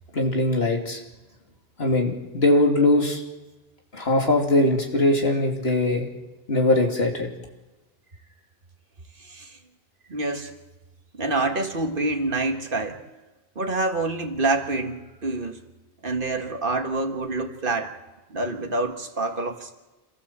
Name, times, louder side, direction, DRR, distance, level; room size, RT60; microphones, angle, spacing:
voice 1, 0.1-1.0 1.8-3.2 3.9-6.1 6.5-7.3, left 2 dB, 80° left, 1 dB, 3.1 m, -21 dB
voice 2, 10.1-10.5 11.1-13.0 13.6-15.6 16.0-17.9 18.3-19.7, right 2 dB, 55° right, 4 dB, 2.0 m, -27 dB
27.5 x 14.5 x 7.5 m, 1.1 s
omnidirectional pair, 1.0 m